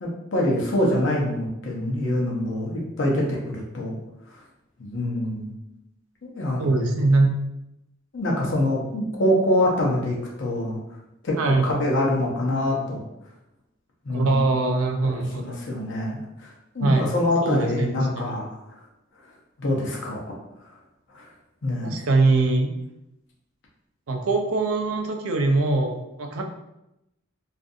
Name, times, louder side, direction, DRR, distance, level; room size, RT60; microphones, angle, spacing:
voice 1, 0.0-4.0 4.3-4.4 4.8-5.5 6.2-6.7 8.1-10.8 11.2-13.0 14.0-14.4 15.0-18.5 19.6-20.4 21.1-21.3 21.6-22.0, left 1 dB, 60° left, -2 dB, 0.7 m, -25 dB
voice 2, 6.6-7.3 11.4-11.7 14.1-15.4 16.8-18.3 21.8-22.7 24.1-26.4, right 3 dB, 90° right, 3 dB, 0.4 m, -22 dB
2.6 x 2.5 x 2.4 m, 0.87 s
head